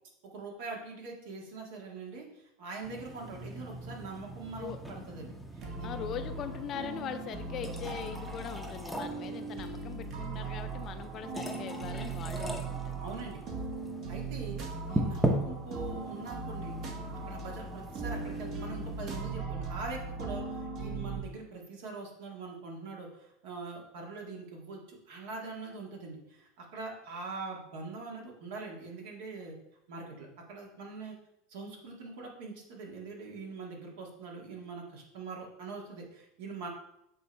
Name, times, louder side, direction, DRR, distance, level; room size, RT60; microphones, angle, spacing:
voice 1, 0.3-5.9 13.0-13.4 14.1-14.6 14.9-16.8 17.3-29.6 29.9-31.2 31.5-36.7, right 3 dB, 75° right, -1 dB, 1.8 m, -43 dB
sound 1, 2.8-19.1, right 1 dB, 5° right, 0.7 m, -39 dB
sound 2, 5.6-21.2, right 4 dB, 45° right, 1.3 m, -39 dB
voice 2, 5.8-13.0, left 9 dB, 40° left, 9 dB, 0.5 m, -41 dB
7.7 x 3.1 x 4.3 m, 0.81 s
supercardioid pair, 120°, 0 cm